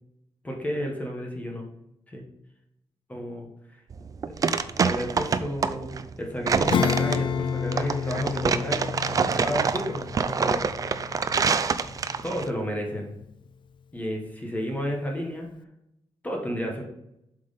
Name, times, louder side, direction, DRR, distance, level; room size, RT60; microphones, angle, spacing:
voice 1, 0.4-1.6 2.1-2.2 3.1-3.8 4.7-8.9 9.4-10.6 12.2-13.1 13.9-15.5 16.2-16.8, equal, 15° left, 1 dB, 1.2 m, -32 dB
sound 1, 3.9-12.5, right 5 dB, 35° right, 0.4 m, -26 dB
Acoustic guitar / Strum, 6.7-12.7, left 6 dB, 50° left, 0.4 m, -30 dB
7.8 x 5.3 x 4.0 m, 0.82 s
wide cardioid pair, 180°, 11 cm